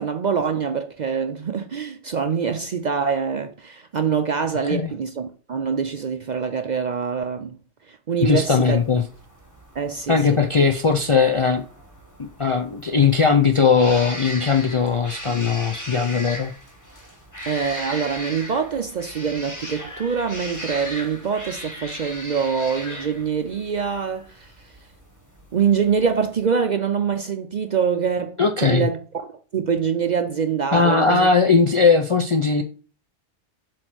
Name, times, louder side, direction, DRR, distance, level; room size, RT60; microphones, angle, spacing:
voice 1, 0.0-7.6 7.9-8.8 9.8-10.4 17.5-24.7 25.5-29.0 29.3-31.3, right 6 dB, 55° right, 0.5 m, -24 dB
voice 2, 8.2-9.0 10.1-11.6 12.4-16.5 28.4-28.9 30.7-32.6, left 5 dB, 45° left, 0.4 m, -19 dB
sound 1, 8.3-26.5, equal, 15° left, 1.6 m, -38 dB
7.8 x 3.1 x 6.0 m
omnidirectional pair, 1.2 m